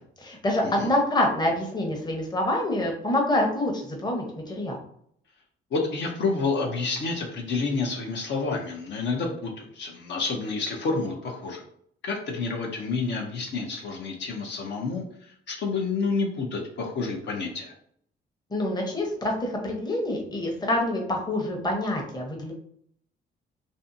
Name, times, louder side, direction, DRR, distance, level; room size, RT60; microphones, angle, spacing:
voice 1, 0.2-4.8 18.5-22.5, left 1 dB, 20° left, 1 dB, 0.8 m, -26 dB
voice 2, 5.7-11.6 12.0-17.7, left 4 dB, 65° left, 0 dB, 0.6 m, -29 dB
2.6 x 2.5 x 2.6 m, 0.65 s
cardioid pair, 90°, 20 cm